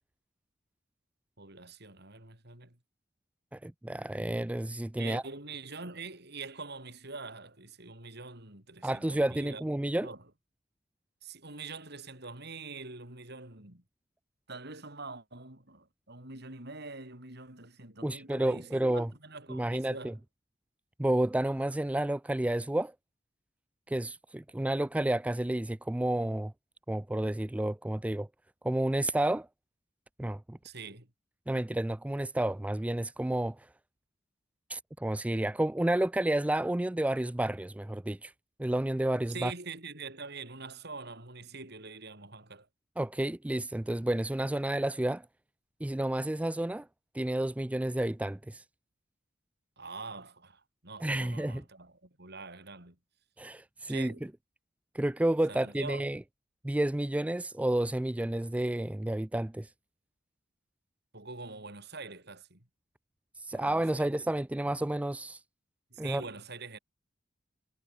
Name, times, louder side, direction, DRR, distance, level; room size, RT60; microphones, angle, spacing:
voice 1, 1.4-2.8 5.0-9.6 10.0-10.2 11.2-13.8 14.5-20.2 30.6-31.1 39.3-42.7 49.8-53.0 53.9-54.3 55.5-56.1 61.1-62.7 63.5-64.1 65.9-66.8, right 4 dB, 60° right, 6.9 m, -44 dB
voice 2, 3.5-5.2 8.8-10.1 18.0-19.1 19.5-20.1 21.0-22.9 23.9-26.5 26.9-28.3 28.6-29.5 30.2-30.6 31.5-33.7 34.7-38.3 38.6-39.5 43.0-45.3 45.8-46.9 47.1-48.6 51.0-51.6 53.4-54.1 54.9-56.2 56.6-59.7 63.4-65.4 66.0-66.2, right 1 dB, 5° right, 0.3 m, -30 dB
head